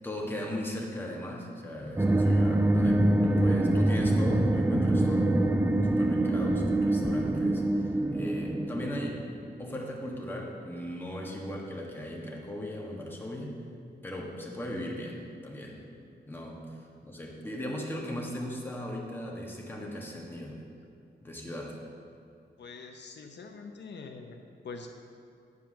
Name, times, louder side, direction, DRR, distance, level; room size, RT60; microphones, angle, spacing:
voice 1, 0.0-5.4 5.8-9.2 9.6-13.6 14.0-15.8 16.2-20.6 21.2-21.8, equal, 10° left, -2 dB, 1.5 m, -38 dB
sound 1, 2.0-9.5, right 1 dB, 10° right, 0.4 m, -25 dB
voice 2, 22.6-24.4 24.6-24.9, left 4 dB, 75° left, 3 dB, 0.7 m, -44 dB
9.7 x 4.7 x 7.3 m, 2.5 s
wide cardioid pair, 120°, 18 cm